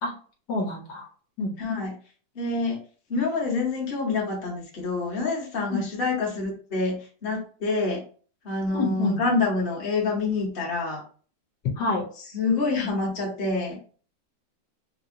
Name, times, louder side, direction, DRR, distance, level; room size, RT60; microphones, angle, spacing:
voice 1, 0.5-1.1 1.4-1.6 5.7-5.8 8.7-9.2 11.8-12.0, left 2 dB, 70° left, 0 dB, 1.4 m, -27 dB
voice 2, 1.6-1.9 2.3-2.8 3.1-8.0 8.4-11.0 12.3-13.8, left 3 dB, 35° left, -2 dB, 1.0 m, -27 dB
3.5 x 2.7 x 2.6 m, 0.40 s
omnidirectional pair, 2.0 m